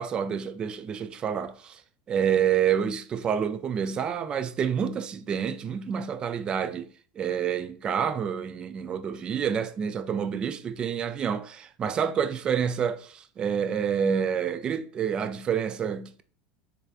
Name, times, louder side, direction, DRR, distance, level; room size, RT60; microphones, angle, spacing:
voice 1, 0.0-1.8 2.1-6.9 7.2-16.2, right 8 dB, 30° right, 0.3 m, -28 dB
3.4 x 3.3 x 2.4 m
supercardioid pair, 130°, 3 cm